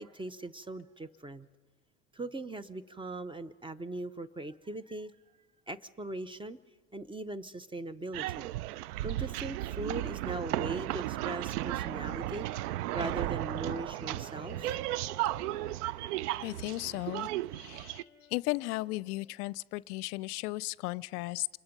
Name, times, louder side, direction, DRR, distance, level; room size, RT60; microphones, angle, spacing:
voice 1, 0.0-1.5 2.1-5.1 5.7-6.6 6.9-8.5 9.0-15.1, right 2 dB, 10° right, 16 dB, 0.7 m, -40 dB
sound 1, 8.1-18.0, right 15 dB, 80° right, 0.6 m, -35 dB
Wind instrument woodwind instrument, 11.2-19.4, left 5 dB, 10° left, 6.7 m, -56 dB
voice 2, 16.4-18.0 18.3-21.5, left 21 dB, 75° left, 21 dB, 0.5 m, -35 dB
27.5 x 21.0 x 5.3 m, 1.4 s
hypercardioid pair, 85°, 46 cm